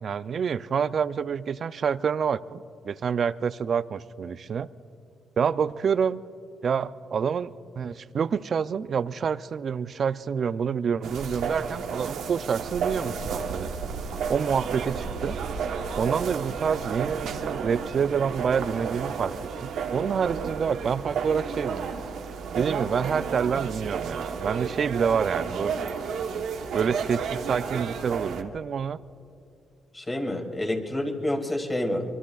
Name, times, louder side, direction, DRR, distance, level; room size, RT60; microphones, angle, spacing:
voice 1, 0.0-4.7 5.4-6.2 6.6-13.7 14.3-15.4 16.0-22.0 22.5-25.7 26.7-29.0, right 6 dB, 50° right, 15 dB, 0.4 m, -27 dB
sound 1, 11.0-28.4, right 6 dB, 75° right, 1.0 m, -32 dB
voice 2, 29.9-32.0, left 1 dB, 20° left, 2 dB, 2.3 m, -28 dB
25.0 x 23.0 x 2.4 m, 2.5 s
cardioid pair, 90°, 0 cm